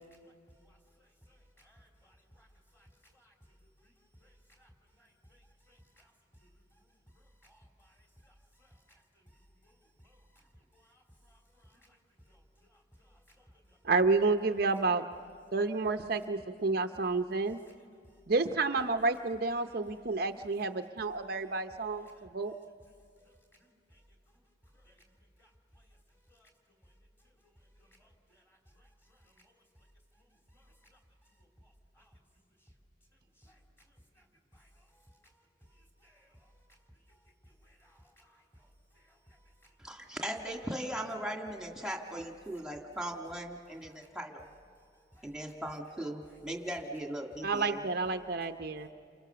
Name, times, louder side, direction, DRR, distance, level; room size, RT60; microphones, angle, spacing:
voice 1, 1.6-2.5 2.7-2.9 3.1-3.3 3.8-3.9 4.2-4.3 4.6-4.7 5.0-5.1 5.7-6.1 6.4-6.5 7.4-7.9 8.2-8.3 8.6-8.7 9.6-9.7 10.0-10.2 10.9-11.0 11.3-11.4 11.7-11.8 22.1-22.3 24.9-25.0 25.4-25.5 26.4-26.5 28.0-28.1 29.4-29.5 30.5-30.6 30.9-31.0 32.0-32.1 33.4-33.6 34.5-34.7 36.0-36.3 37.6-38.4 38.9-39.2 43.7-44.1 45.1-45.3 46.2-46.3, equal, 15° left, 3.3 m, -63 dB
voice 2, 13.8-15.0 15.5-17.6 18.3-22.5 47.4-48.9, right 3 dB, 55° right, 0.7 m, -30 dB
voice 3, 39.8-44.4 45.2-47.8, right 1 dB, 5° right, 2.0 m, -38 dB
30.0 x 27.5 x 6.9 m
head